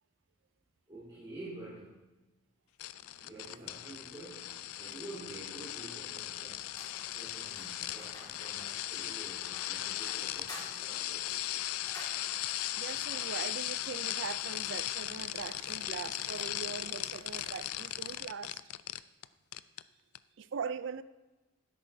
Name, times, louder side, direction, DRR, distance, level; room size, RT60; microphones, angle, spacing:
voice 1, 0.9-2.1 3.0-11.9, right 2 dB, 25° right, -11 dB, 3.4 m, -49 dB
sound 1, 2.8-19.3 19.5-19.8 20.2-20.3, left 14 dB, 85° left, 0.3 m, -38 dB
sound 2, 6.7-18.2, left 1 dB, 20° left, 2.0 m, -53 dB
voice 2, 12.8-18.6 20.4-21.0, right 6 dB, 55° right, 15 dB, 0.4 m, -41 dB
12.5 x 10.5 x 2.7 m, 1.1 s
head